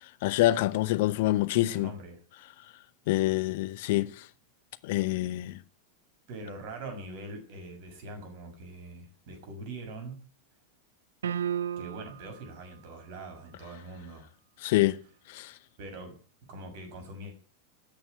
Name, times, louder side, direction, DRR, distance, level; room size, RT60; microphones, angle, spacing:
voice 1, 0.2-1.9 3.1-4.1 4.8-5.6 14.6-15.0 15.3-15.5, left 17 dB, 50° left, 0.8 m, -26 dB
voice 2, 1.5-2.2 6.3-10.2 11.8-14.3 14.7-14.8 15.8-17.3, right 2 dB, 50° right, 6.5 m, -43 dB
sound 1, 11.2-12.3, right 8 dB, 65° right, 0.7 m, -32 dB
13.0 x 9.1 x 9.3 m
figure-of-eight pair, 90°, 0 cm